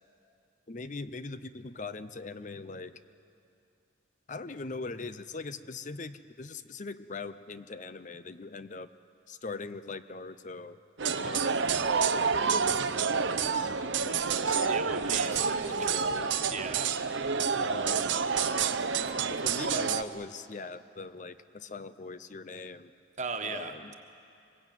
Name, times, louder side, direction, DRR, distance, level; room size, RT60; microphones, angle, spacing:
voice 1, 0.7-3.0 4.3-8.9 9.3-10.8 11.2-12.4 12.9-14.7 15.3-16.4 17.6-18.2 19.0-22.9 23.4-23.9, left 3 dB, 40° left, 12 dB, 0.7 m, -41 dB
sound 1, 11.0-20.0, right 5 dB, 75° right, 0.9 m, -28 dB
voice 2, 14.7-15.9 16.5-16.9 17.2-17.3 23.2-23.9, right 4 dB, 40° right, 6 dB, 1.4 m, -38 dB
24.5 x 21.5 x 9.2 m, 2.5 s
head